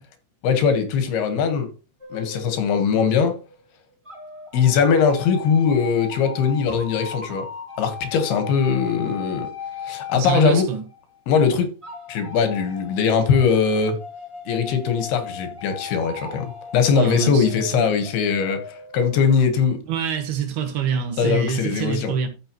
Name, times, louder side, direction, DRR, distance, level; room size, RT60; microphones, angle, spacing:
voice 1, 0.4-1.7 2.1-3.4 4.5-7.5 7.8-9.5 9.8-10.7 11.3-11.7 12.1-14.0 14.5-19.8 21.2-22.1, left 6 dB, 85° left, 3.5 m, -20 dB
sound 1, 2.0-3.5 4.0-11.2 11.8-19.3, left 5 dB, 15° right, 1.1 m, -38 dB
voice 2, 10.1-10.8 16.9-17.5 17.7-17.9 19.9-22.3, right 7 dB, 80° right, 3.5 m, -26 dB
13.5 x 6.4 x 3.1 m
omnidirectional pair, 4.4 m